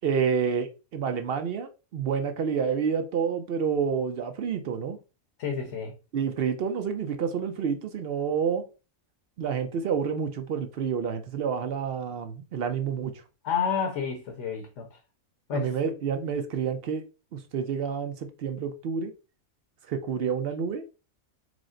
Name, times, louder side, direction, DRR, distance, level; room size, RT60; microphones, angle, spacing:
voice 1, 0.0-5.0 6.1-8.6 9.4-13.2 15.5-17.0 17.3-19.1 19.9-20.8, right 6 dB, 60° right, 0.6 m, -29 dB
voice 2, 5.4-5.9 13.4-15.0 15.5-15.7, left 7 dB, 60° left, 1.0 m, -30 dB
4.9 x 2.0 x 3.7 m
omnidirectional pair, 1.4 m